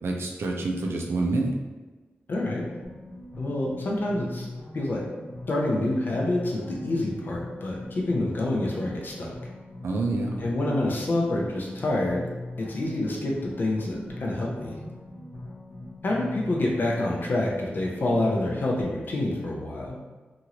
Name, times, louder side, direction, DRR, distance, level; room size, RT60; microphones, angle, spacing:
voice 1, 0.0-1.5 9.8-10.4, right 2 dB, 75° right, 0 dB, 0.4 m, -27 dB
voice 2, 2.3-2.7 3.4-4.5 4.7-5.0 5.5-9.3 10.4-12.2 12.6-14.8 16.0-19.9, left 1 dB, 50° left, -3 dB, 0.5 m, -27 dB
sound 1, 2.8-18.8, left 2 dB, 70° left, 0.8 m, -41 dB
2.9 x 2.5 x 2.8 m, 1.3 s
wide cardioid pair, 170°, 4 cm